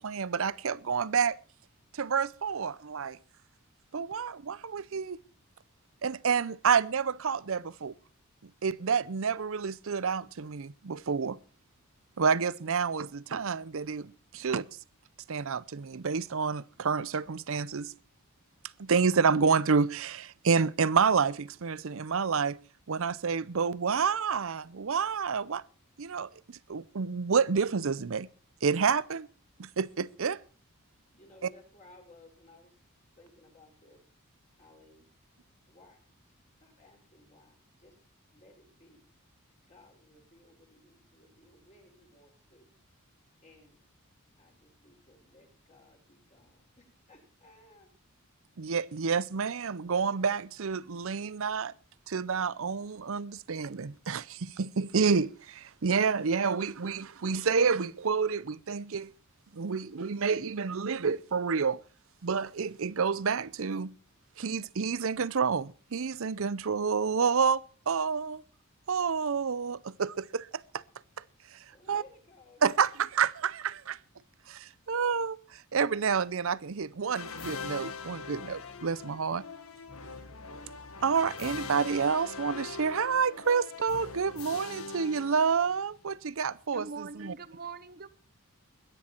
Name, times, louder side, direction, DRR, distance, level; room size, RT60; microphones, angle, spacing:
voice 1, 0.0-1.4 1.9-3.2 3.9-5.2 6.0-7.9 8.4-11.4 12.2-14.7 15.3-17.9 18.8-22.6 22.9-25.6 26.0-28.3 28.6-29.3 29.6-30.4 48.6-51.7 52.1-59.1 59.5-61.8 62.2-63.9 64.4-68.4 68.9-70.5 70.7-70.8 71.5-71.6 71.9-72.0 72.6-74.0 74.5-79.4 81.0-87.3, right 5 dB, 60° right, 0.6 m, -29 dB
voice 2, 31.1-32.8 33.2-34.0 34.6-35.1 35.7-36.0 36.6-38.0 38.3-39.1 39.6-42.7 43.4-43.8 44.4-47.9 71.7-72.8, left 2 dB, 30° left, 5.3 m, -59 dB
sound 1, 77.1-86.0, left 4 dB, 70° left, 1.5 m, -42 dB
voice 3, 86.7-88.1, right 4 dB, 45° right, 1.0 m, -42 dB
21.5 x 10.0 x 4.4 m
head